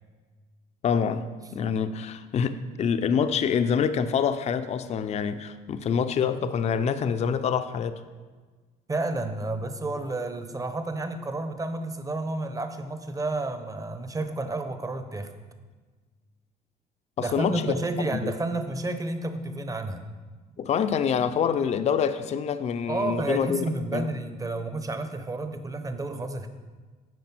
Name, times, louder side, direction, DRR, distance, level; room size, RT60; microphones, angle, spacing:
voice 1, 0.8-8.0 17.2-17.7 18.1-18.3 20.6-23.6 23.9-24.1, left 7 dB, 40° left, 11 dB, 0.5 m, -26 dB
voice 2, 8.9-15.3 17.2-20.0 22.9-26.5, right 2 dB, 20° right, 9 dB, 0.8 m, -31 dB
9.4 x 5.1 x 6.1 m, 1.4 s
cardioid pair, 110°, 17 cm